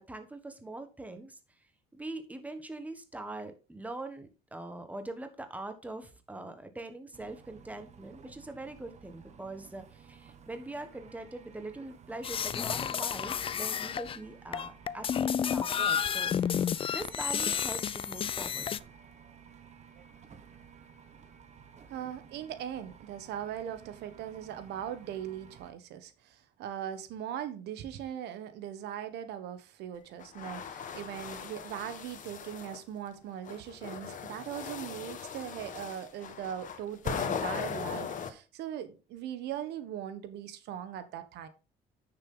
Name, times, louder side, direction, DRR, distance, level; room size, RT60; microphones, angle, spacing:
voice 1, 0.0-1.4 1.9-18.6, right 2 dB, 10° right, 1.4 m, -43 dB
sound 1, 7.1-25.7, right 7 dB, 45° right, 1.3 m, -55 dB
sound 2, 12.2-14.2 14.5-18.8, left 8 dB, 35° left, 0.4 m, -31 dB
voice 2, 21.9-41.5, right 10 dB, 80° right, 1.3 m, -40 dB
sound 3, 30.2-32.8 33.4-38.3, left 7 dB, 50° left, 1.4 m, -38 dB
9.6 x 6.7 x 3.8 m
cardioid pair, 110°, 17 cm